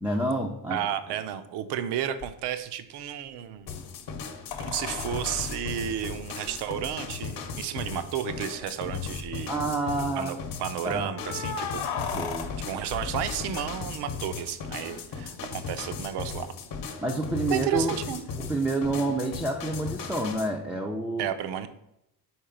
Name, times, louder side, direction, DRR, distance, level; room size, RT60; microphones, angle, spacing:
voice 1, 0.0-0.9 9.5-10.4 10.8-11.4 12.1-12.5 17.0-18.0 18.4-21.3, right 2 dB, 5° right, 0 dB, 0.3 m, -29 dB
voice 2, 0.7-3.7 4.6-9.5 10.2-12.3 12.6-16.5 17.5-18.2 18.9-19.1 21.2-21.7, right 10 dB, 80° right, 11 dB, 0.6 m, -32 dB
sound 1, 2.2-2.3 4.5-6.9 7.9-8.0 8.2-8.3 8.9-9.4 11.1-14.2 16.7-16.8, left 6 dB, 90° left, 0.8 m, -36 dB
sound 2, 3.7-20.5, left 5 dB, 55° left, 0.9 m, -37 dB
4.7 x 4.5 x 5.0 m, 0.82 s
cardioid pair, 140°, 39 cm